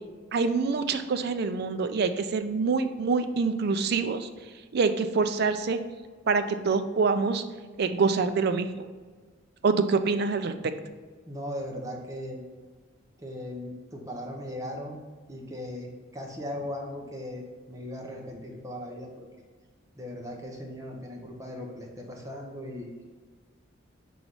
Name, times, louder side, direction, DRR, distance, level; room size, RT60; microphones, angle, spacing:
voice 1, 0.3-4.3 4.7-5.8 6.3-7.4 7.8-8.8 9.6-10.5, right 4 dB, 55° right, 9 dB, 0.4 m, -25 dB
voice 2, 11.3-12.4 13.2-15.0 15.3-17.4 17.7-19.3 20.0-23.0, left 1 dB, 15° right, 0 dB, 0.9 m, -38 dB
4.7 x 3.9 x 5.4 m, 1.4 s
head